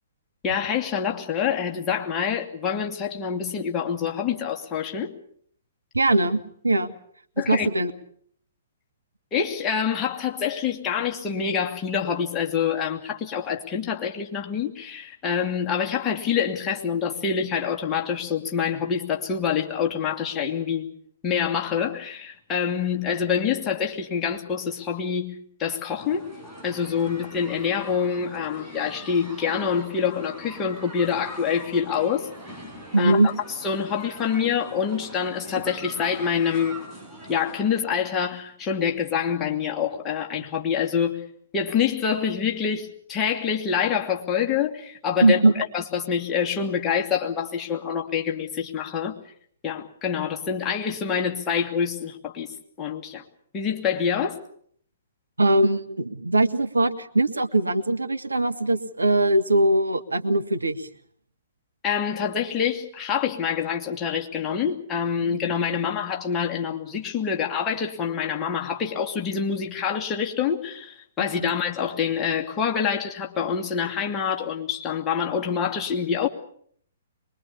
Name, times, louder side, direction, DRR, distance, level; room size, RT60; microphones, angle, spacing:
voice 1, 0.4-5.1 7.4-7.7 9.3-20.9 21.2-25.3 25.6-26.3 26.6-32.3 33.0-33.2 33.6-36.8 37.3-41.3 41.5-45.4 45.7-49.2 49.6-52.5 52.8-53.2 53.5-54.4 61.8-76.3, left 7 dB, 20° left, 0 dB, 2.6 m, -26 dB
voice 2, 5.9-6.9 7.5-7.9 32.9-33.3 45.2-45.5 55.4-60.9 65.2-65.4 71.4-71.5, right 2 dB, 80° right, 10 dB, 1.5 m, -21 dB
sound 1, 26.0-37.6, equal, 5° right, 6.9 m, -42 dB
23.5 x 22.5 x 7.1 m, 0.63 s
figure-of-eight pair, 120°, 0 cm